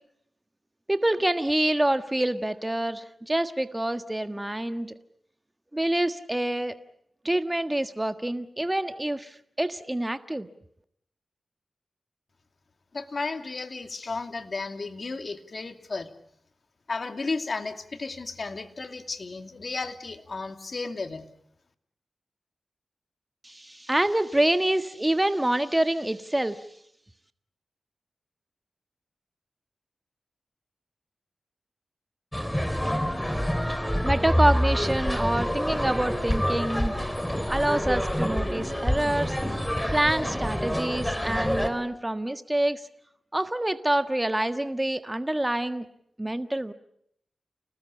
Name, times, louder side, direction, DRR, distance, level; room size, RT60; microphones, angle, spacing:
voice 1, 0.9-4.9 5.7-6.7 7.2-10.5 23.4-26.6 34.0-36.9 37.5-39.3 39.9-42.8 43.3-45.8 46.2-46.7, right 1 dB, 15° right, 9 dB, 1.5 m, -26 dB
voice 2, 12.9-16.1 16.9-21.3, left 3 dB, 55° left, 7 dB, 2.5 m, -33 dB
sound 1, 32.3-41.7, equal, 5° left, 4.0 m, -27 dB
29.5 x 19.5 x 8.4 m, 0.73 s
cardioid pair, 55°, 0 cm